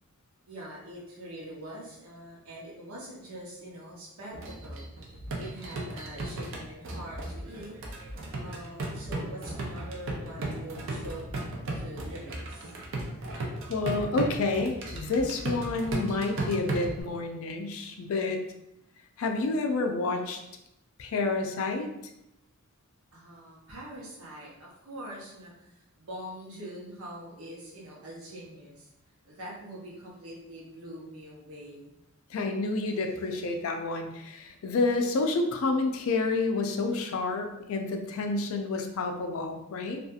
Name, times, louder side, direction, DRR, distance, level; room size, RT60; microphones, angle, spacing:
voice 1, 0.5-7.7 8.4-12.8 23.1-28.9 29.2-31.9, right 1 dB, 80° right, -4 dB, 0.9 m, -44 dB
sound 1, 4.3-17.0, right 2 dB, 60° right, 0.5 m, -36 dB
voice 2, 13.7-18.4 19.2-20.4 21.0-21.9 32.3-40.0, left 3 dB, 70° left, 4 dB, 0.4 m, -29 dB
2.7 x 2.4 x 2.3 m, 0.84 s
head